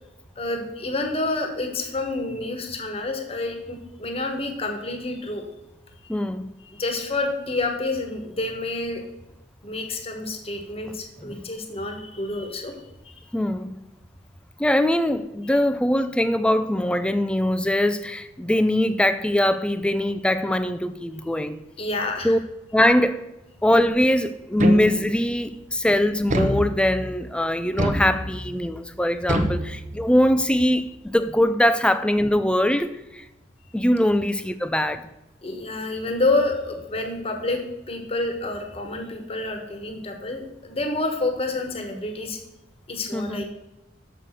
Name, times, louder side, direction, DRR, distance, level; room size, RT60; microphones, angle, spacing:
voice 1, 0.4-5.4 6.7-9.0 9.6-12.7 13.1-13.2 21.8-22.3 35.4-37.6 37.9-42.4 42.9-43.4, left 2 dB, 35° left, 1.2 m, -28 dB
voice 2, 6.1-6.5 11.2-11.4 13.3-13.7 14.6-21.6 22.2-22.4 22.7-23.2 23.6-33.3 33.7-35.1 43.1-43.4, left 1 dB, 5° left, 0.4 m, -22 dB
sound 1, 24.6-25.3 26.3-27.1 27.8-28.6 29.3-30.3, equal, 40° right, 0.8 m, -26 dB
6.8 x 5.8 x 6.4 m
head